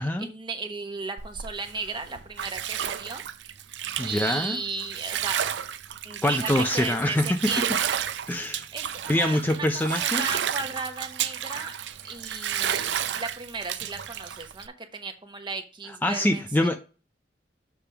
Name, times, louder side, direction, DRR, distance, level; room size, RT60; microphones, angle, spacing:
voice 1, 0.0-3.2 4.0-5.4 6.0-8.0 8.7-11.8 12.0-16.7, right 4 dB, 25° right, 1.1 m, -35 dB
Bathtub (filling or washing), 1.2-14.7, right 9 dB, 80° right, 0.5 m, -31 dB
voice 2, 4.0-4.6 6.2-7.5 8.3-8.7 9.1-10.4 16.0-16.8, left 1 dB, 10° left, 0.4 m, -25 dB
6.9 x 3.6 x 5.6 m
head